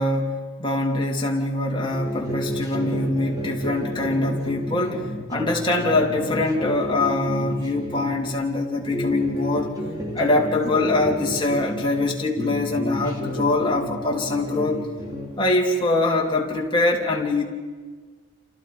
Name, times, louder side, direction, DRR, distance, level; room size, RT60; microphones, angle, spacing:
voice 1, 0.0-5.0 5.3-9.7 10.1-14.8 15.4-17.4, left 2 dB, 20° left, -1 dB, 3.2 m, -23 dB
sound 1, 1.9-8.4 8.8-12.1 12.4-15.5, equal, 15° right, 3.3 m, -31 dB
29.5 x 28.5 x 5.2 m, 1.4 s
head